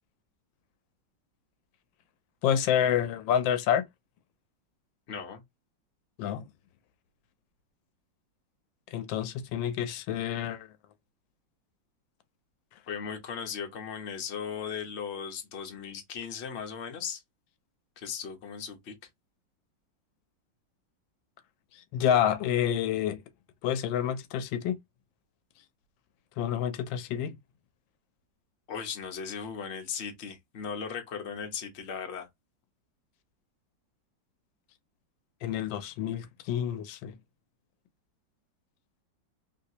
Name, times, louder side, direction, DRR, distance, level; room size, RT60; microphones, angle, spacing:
voice 1, 2.4-3.8 6.2-6.5 8.9-10.7 21.9-23.2 23.6-24.8 26.4-27.3 35.4-37.1, left 9 dB, 85° left, 1.3 m, -28 dB
voice 2, 5.1-5.4 12.9-17.2 18.0-18.9 28.7-32.3, left 6 dB, 45° left, 1.0 m, -37 dB
3.2 x 2.9 x 2.7 m
omnidirectional pair, 2.0 m